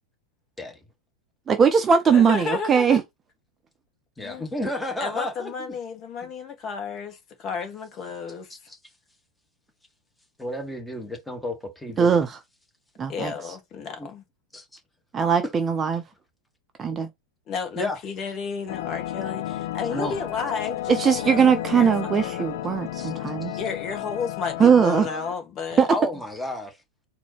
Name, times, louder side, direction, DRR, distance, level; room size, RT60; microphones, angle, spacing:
voice 1, 1.5-3.0 12.0-12.3 13.0-13.3 15.1-16.0 16.8-17.1 20.9-23.5 24.6-25.1 25.8-25.9, right 6 dB, 20° right, 0.7 m, -20 dB
voice 2, 2.0-3.0 4.2-4.4 5.0-8.5 13.1-14.2 17.5-22.5 23.6-25.9, left 5 dB, 30° left, 1.6 m, -32 dB
voice 3, 4.2-5.5 8.5-8.8 10.4-12.2 14.0-14.1 14.5-14.8 15.4-15.5 17.7-18.0 19.9-20.2 22.2-22.3 23.0-23.1 23.4-23.6 25.9-26.8, left 1 dB, 5° left, 1.5 m, -32 dB
sound 1, 18.7-25.4, left 13 dB, 55° left, 0.3 m, -32 dB
4.2 x 2.8 x 4.4 m
figure-of-eight pair, 90°, 0 cm